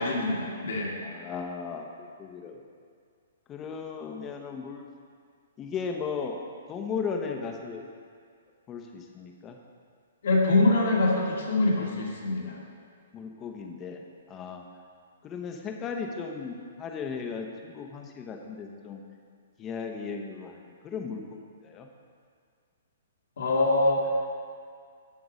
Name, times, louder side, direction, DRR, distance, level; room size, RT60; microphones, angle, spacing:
voice 1, 0.0-0.9 10.2-12.6 23.4-24.1, left 2 dB, 70° left, -3 dB, 1.8 m, -24 dB
voice 2, 1.0-2.6 3.5-4.8 5.6-6.4 6.7-7.9 8.7-9.6 13.1-14.0 14.3-14.6 15.2-19.0 19.6-20.6 20.8-21.4 21.6-21.9, left 5 dB, 25° left, 3 dB, 0.9 m, -36 dB
8.3 x 5.8 x 5.1 m, 2.1 s
hypercardioid pair, 130°, 0 cm